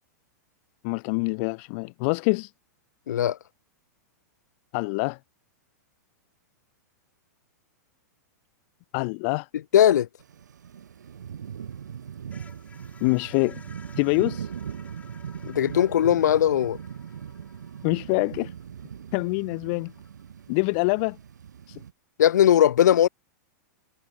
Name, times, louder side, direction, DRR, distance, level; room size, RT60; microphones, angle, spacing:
voice 1, 0.8-2.5 4.7-5.2 8.9-9.5 13.0-13.6 14.0-14.5 17.8-18.5 19.1-19.9 20.5-21.2 21.7-21.8, left 33 dB, 45° left, 0.5 m, -25 dB
voice 2, 3.1-3.4 9.7-10.1 15.4-16.8 22.2-23.1, left 10 dB, 80° left, 0.9 m, -19 dB
sound 1, 10.2-21.9, right 8 dB, 90° right, 4.5 m, -39 dB
sound 2, 11.6-20.4, left 5 dB, 15° left, 6.2 m, -55 dB
hypercardioid pair, 130°, 9 cm